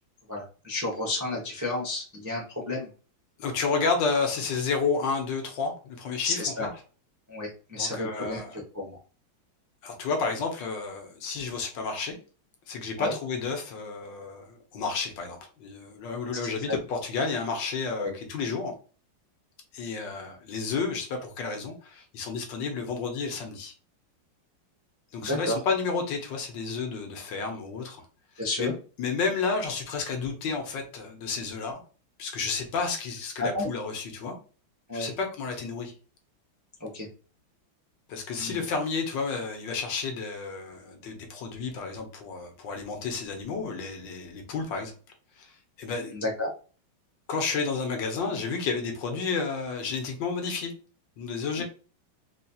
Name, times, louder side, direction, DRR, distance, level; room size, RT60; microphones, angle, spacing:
voice 1, 0.3-2.9 6.2-6.7 7.3-9.0 13.0-13.1 16.4-16.8 17.9-18.1 25.2-25.6 28.4-28.7 33.4-33.7 34.9-35.1 36.8-37.1 38.4-38.6 46.1-46.5 51.6-51.7, left 2 dB, 25° right, -3 dB, 0.4 m, -31 dB
voice 2, 3.4-6.7 7.8-8.6 9.8-12.2 12.7-18.7 19.7-23.7 25.1-28.0 28.6-31.8 32.2-34.3 34.9-35.9 38.1-44.9 45.4-45.5 45.8-46.1 47.3-50.7 51.2-51.6, left 4 dB, 70° left, 4 dB, 1.5 m, -31 dB
4.1 x 2.8 x 2.3 m, 0.37 s
omnidirectional pair, 2.1 m